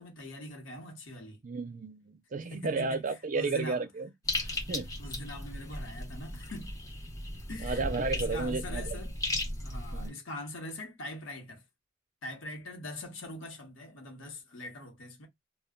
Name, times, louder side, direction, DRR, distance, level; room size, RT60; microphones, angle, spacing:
voice 1, 0.0-1.4 2.5-3.8 4.4-4.6 5.0-6.8 7.5-9.2 9.6-11.6 12.2-15.3, left 1 dB, 85° left, 1.1 m, -42 dB
voice 2, 1.4-4.1 4.7-4.9 7.6-9.0 9.9-10.2, right 3 dB, 40° right, 0.5 m, -33 dB
sound 1, 4.2-10.1, left 1 dB, 20° left, 0.9 m, -36 dB
2.3 x 2.2 x 3.7 m
head